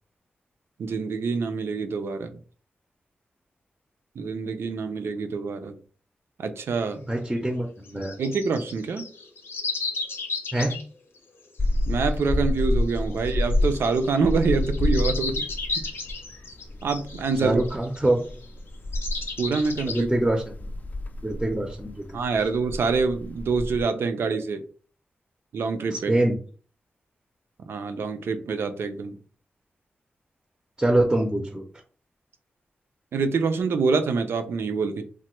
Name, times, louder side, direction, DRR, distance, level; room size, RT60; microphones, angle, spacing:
voice 1, 0.8-2.4 4.2-5.8 6.4-7.0 8.2-9.1 11.9-15.4 15.8-15.9 16.8-17.6 19.4-20.1 22.1-24.6 25.5-26.1 27.7-29.2 33.1-35.0, right 4 dB, 90° right, 8 dB, 0.4 m, -26 dB
sound 1, 6.7-6.8 7.8-10.8 11.7-18.5 18.9-20.0, left 3 dB, 80° left, 0.7 m, -34 dB
voice 2, 7.1-8.2 10.5-10.8 17.4-18.2 19.9-20.7 21.2-22.0 25.9-26.4 30.8-31.6, right 1 dB, 15° right, 2 dB, 0.5 m, -24 dB
sound 2, 11.6-23.8, left 1 dB, 45° left, 0.4 m, -29 dB
3.2 x 2.1 x 3.0 m, 0.41 s
wide cardioid pair, 85°, 4 cm